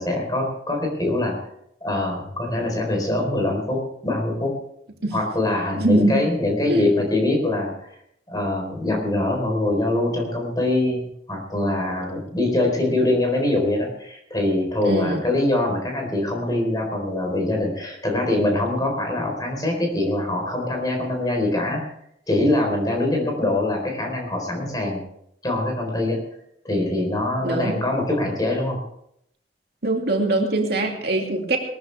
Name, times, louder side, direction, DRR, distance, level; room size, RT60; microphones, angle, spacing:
voice 1, 0.0-1.4 1.8-4.5 5.1-7.9 8.3-21.8 22.3-25.0 25.4-26.2 26.6-28.8, left 1 dB, 20° left, 1 dB, 4.3 m, -23 dB
voice 2, 5.8-6.2 6.7-6.9 14.8-15.2 27.4-27.8 29.8-31.6, right 2 dB, 60° right, 1 dB, 2.5 m, -22 dB
21.0 x 13.5 x 3.5 m, 0.74 s
head